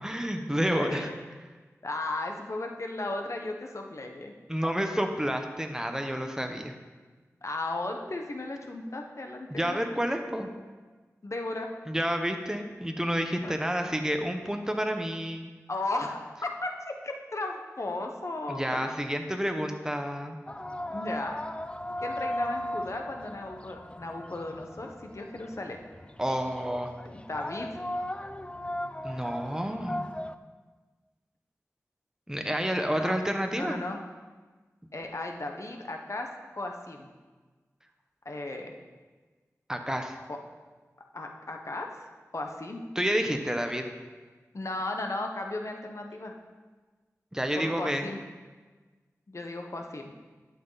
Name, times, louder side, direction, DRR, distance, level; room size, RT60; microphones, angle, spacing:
voice 1, 0.0-1.1 4.5-6.7 9.5-10.5 11.9-15.5 18.5-20.4 26.2-26.9 29.0-30.1 32.3-33.8 39.7-40.1 42.9-43.8 47.3-48.1, equal, 10° right, 5 dB, 1.1 m, -29 dB
voice 2, 0.7-1.2 1.8-4.3 7.4-9.8 11.2-11.7 13.4-13.5 15.7-18.9 20.9-21.4 22.0-25.8 27.1-27.7 32.9-33.2 33.5-34.0 34.9-36.3 36.5-37.1 38.2-38.7 40.3-40.4 41.1-42.0 42.3-42.8 44.5-46.3 47.6-48.2 49.3-50.1, left 2 dB, 60° left, 3 dB, 1.2 m, -35 dB
sound 1, 20.5-30.4, left 1 dB, 20° left, 0.4 m, -37 dB
11.5 x 7.8 x 4.1 m, 1.4 s
wide cardioid pair, 50°, 6 cm